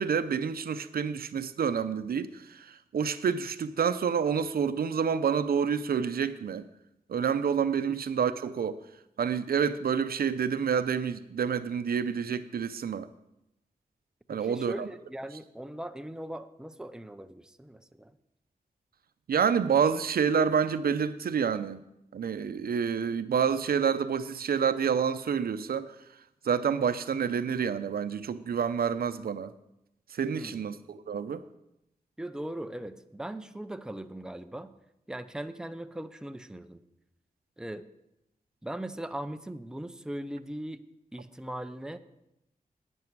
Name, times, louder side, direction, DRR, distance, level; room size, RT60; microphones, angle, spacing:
voice 1, 0.0-6.7 7.1-8.8 9.2-13.1 14.3-14.9 19.3-21.8 22.1-25.9 26.4-29.5 30.1-31.4, right 7 dB, 80° right, 13 dB, 0.5 m, -28 dB
voice 2, 14.3-18.1 30.3-30.6 32.2-34.7 35.1-36.8 37.6-37.9 38.6-40.8 41.1-42.0, right 1 dB, 5° right, 10 dB, 0.6 m, -39 dB
11.0 x 9.7 x 4.7 m, 0.85 s
wide cardioid pair, 85°, 15 cm